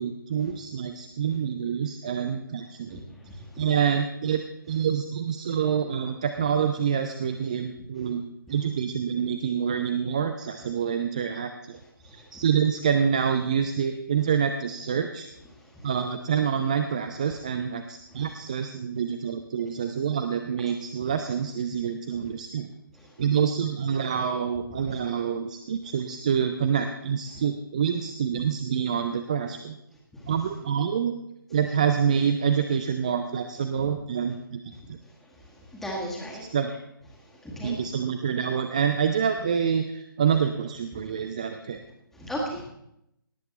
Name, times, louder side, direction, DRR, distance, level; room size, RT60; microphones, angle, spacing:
voice 1, 0.0-3.0 3.6-8.2 8.5-11.8 12.0-15.3 15.8-22.7 23.2-29.8 30.3-31.1 31.5-34.6 34.9-35.0 36.5-36.7 37.6-41.8, right 7 dB, 20° right, 8 dB, 0.4 m, -27 dB
voice 2, 35.7-36.4 37.4-37.7 40.9-41.0 42.2-42.6, equal, ahead, -3 dB, 1.7 m, -34 dB
17.5 x 7.8 x 4.2 m, 0.81 s
figure-of-eight pair, 145°, 12 cm